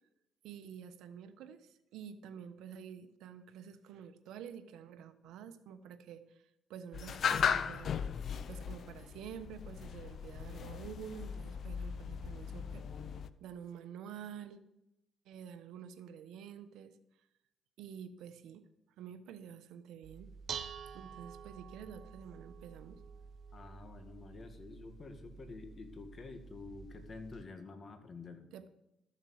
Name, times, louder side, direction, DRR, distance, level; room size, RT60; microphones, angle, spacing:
voice 1, 0.4-6.4 6.7-7.9 8.5-12.8 13.4-14.6 15.2-17.0 17.8-18.7 19.0-20.3 20.9-23.0 28.5-28.7, right 8 dB, 85° right, 9 dB, 1.1 m, -49 dB
sound 1, 6.9-13.3, left 7 dB, 60° left, 0.6 m, -37 dB
Dishes pots and pans, 20.0-27.4, right 7 dB, 60° right, 0.8 m, -49 dB
voice 2, 23.5-28.4, left 4 dB, 40° left, 7 dB, 2.0 m, -49 dB
13.5 x 7.4 x 6.5 m, 0.87 s
cardioid pair, 90°, 0 cm